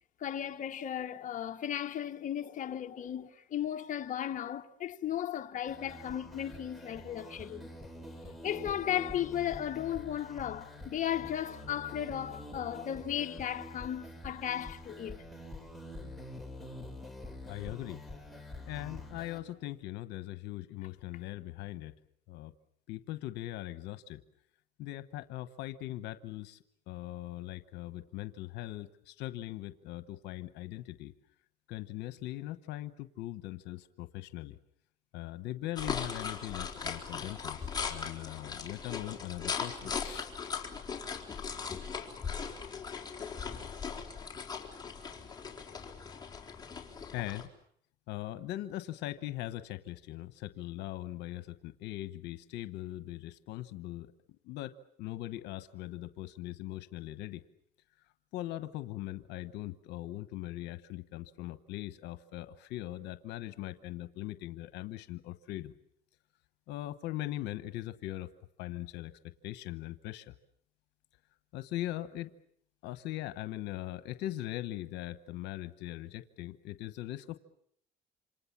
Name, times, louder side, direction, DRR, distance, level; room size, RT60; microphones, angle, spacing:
voice 1, 0.2-7.7 8.4-15.2, left 10 dB, 50° left, 1.3 m, -35 dB
sound 1, 5.7-19.4, left 1 dB, ahead, 4.6 m, -46 dB
voice 2, 17.5-18.0 18.7-21.9 22.3-22.5 22.9-24.2 24.8-26.6 26.9-31.1 31.7-34.6 35.1-40.3 47.1-47.5 48.1-54.1 54.4-54.7 55.0-57.4 58.3-65.7 66.7-68.3 68.6-69.1 69.4-70.3 71.5-72.3 72.8-77.4, left 15 dB, 90° left, 1.1 m, -40 dB
sound 2, 35.8-47.5, left 6 dB, 25° left, 4.1 m, -39 dB
28.0 x 26.5 x 7.3 m
cardioid pair, 110°, 17 cm